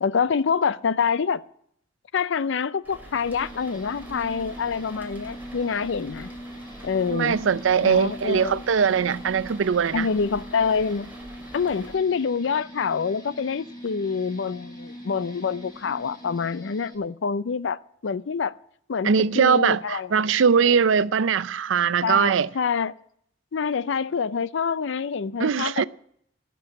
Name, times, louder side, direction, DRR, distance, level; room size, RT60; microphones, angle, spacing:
voice 1, 0.0-1.4 2.1-6.3 6.8-7.4 7.8-8.6 9.9-11.1 11.5-18.5 18.9-20.1 22.0-22.9 23.5-25.8, left 6 dB, 70° left, 0.5 m, -26 dB
sound 1, 2.8-12.0, right 1 dB, 10° right, 2.6 m, -45 dB
sound 2, 3.2-16.9, equal, 25° left, 3.4 m, -42 dB
voice 2, 7.1-10.1 19.0-22.5 25.4-25.8, right 6 dB, 80° right, 0.5 m, -21 dB
15.0 x 6.1 x 9.4 m
head